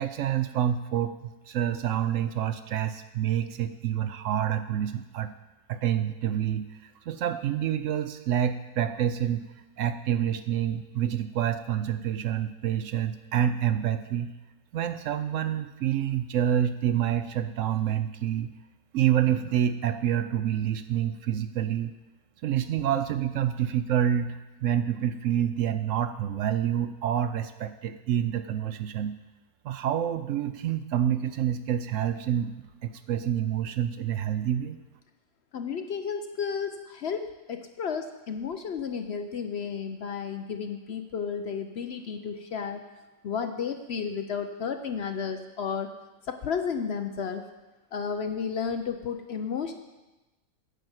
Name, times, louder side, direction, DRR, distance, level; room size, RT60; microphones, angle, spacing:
voice 1, 0.0-5.3 5.7-9.5 9.8-14.3 14.7-18.5 18.9-21.9 22.4-29.1 29.6-34.8, right 10 dB, 70° right, 10 dB, 0.8 m, -27 dB
voice 2, 35.5-42.8 43.2-45.9 46.3-47.4 47.9-49.7, left 6 dB, 60° left, 7 dB, 0.7 m, -32 dB
9.8 x 5.9 x 7.9 m, 1.1 s
omnidirectional pair, 1.5 m